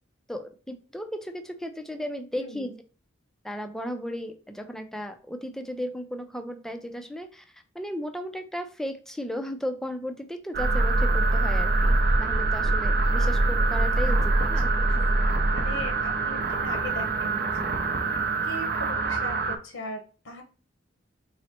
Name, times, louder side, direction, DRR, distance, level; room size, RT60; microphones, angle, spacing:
voice 1, 0.3-2.7 3.4-14.7, equal, 5° left, 7 dB, 0.4 m, -35 dB
voice 2, 2.3-2.8 14.0-15.0 15.5-20.4, left 1 dB, 80° left, 4 dB, 0.9 m, -40 dB
sound 1, 10.5-19.6, right 2 dB, 55° right, 0.6 m, -24 dB
4.1 x 2.1 x 4.2 m, 0.37 s
head